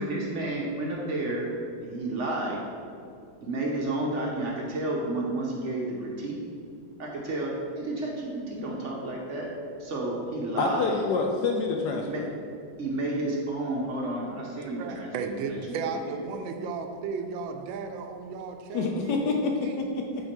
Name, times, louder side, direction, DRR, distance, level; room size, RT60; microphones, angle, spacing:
voice 1, 0.0-1.5 1.8-2.6 3.4-6.4 7.0-9.5 9.8-11.0 12.0-12.3 12.8-15.1 15.5-15.6 16.0-16.1, right 2 dB, 55° right, -2 dB, 0.8 m, -31 dB
voice 2, 10.6-12.3 18.7-20.3, left 3 dB, 75° left, 2 dB, 0.9 m, -27 dB
voice 3, 14.5-19.8, right 5 dB, 75° right, 5 dB, 1.3 m, -35 dB
8.2 x 3.6 x 4.4 m, 2.5 s
omnidirectional pair, 2.2 m